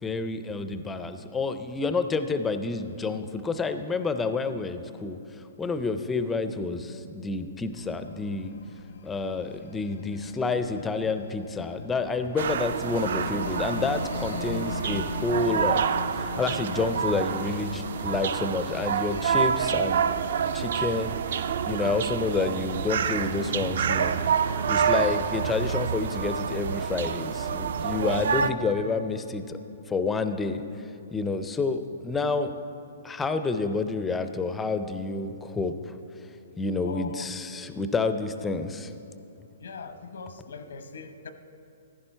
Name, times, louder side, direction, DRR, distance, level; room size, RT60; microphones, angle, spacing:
voice 1, 0.0-8.5 9.0-15.8 16.1-20.0 20.5-24.2 24.7-29.6 29.9-32.5 33.0-35.9 36.6-38.9, left 3 dB, 10° left, 9 dB, 0.4 m, -29 dB
sound 1, 7.7-20.7, left 6 dB, 70° left, 0.5 m, -40 dB
voice 2, 10.4-10.8 36.8-37.3 39.6-41.3, left 4 dB, 90° left, 9 dB, 1.0 m, -41 dB
sound 2, 12.4-28.5, right 7 dB, 60° right, 0.4 m, -28 dB
15.0 x 11.0 x 4.4 m, 2.7 s
hypercardioid pair, 170°, 0 cm